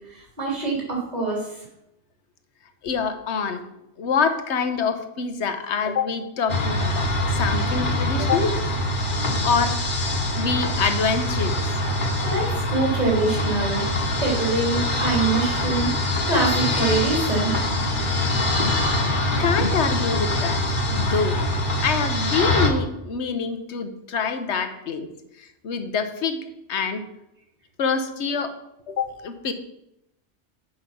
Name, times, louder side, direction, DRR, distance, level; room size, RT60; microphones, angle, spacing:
voice 1, 0.1-1.6 12.2-13.8 14.2-15.9 16.3-17.5, right 3 dB, 35° right, -4 dB, 3.2 m, -24 dB
voice 2, 2.8-3.6 4.0-8.6 9.4-9.8 10.3-11.8 19.4-21.4 21.8-25.1 25.4-26.4 26.7-27.0 27.8-28.5 28.9-29.5, left 5 dB, 75° left, 8 dB, 1.2 m, -25 dB
sound 1, 6.5-22.7, left 1 dB, 45° left, 1.4 m, -24 dB
8.6 x 5.3 x 6.0 m, 0.86 s
omnidirectional pair, 1.2 m